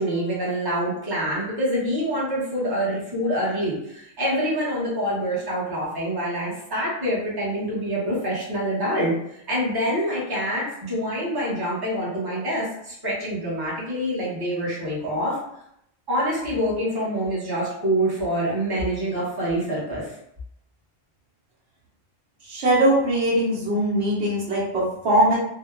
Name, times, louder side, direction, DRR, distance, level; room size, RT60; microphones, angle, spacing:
voice 1, 0.0-9.1 9.5-15.4 16.1-20.0, equal, 25° right, -7 dB, 0.9 m, -26 dB
voice 2, 22.5-25.4, right 1 dB, 90° right, -5 dB, 1.1 m, -21 dB
2.7 x 2.2 x 2.4 m, 0.75 s
omnidirectional pair, 1.1 m